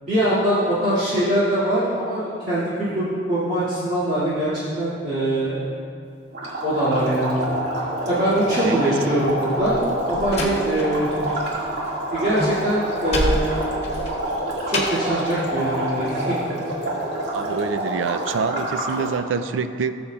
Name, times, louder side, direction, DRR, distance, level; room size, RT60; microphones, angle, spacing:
voice 1, 0.0-5.7 6.6-7.4 8.1-9.8 10.1-11.1 12.1-13.6 14.7-16.4, right 1 dB, 40° right, -13 dB, 2.3 m, -22 dB
sound 1, 6.3-19.2, right 1 dB, 65° right, 2.0 m, -27 dB
Slam, 9.6-11.4 11.7-15.1, left 1 dB, 35° left, 1.2 m, -28 dB
voice 2, 17.3-20.0, right 5 dB, 90° right, 10 dB, 0.4 m, -26 dB
17.0 x 7.1 x 2.4 m, 2.5 s
head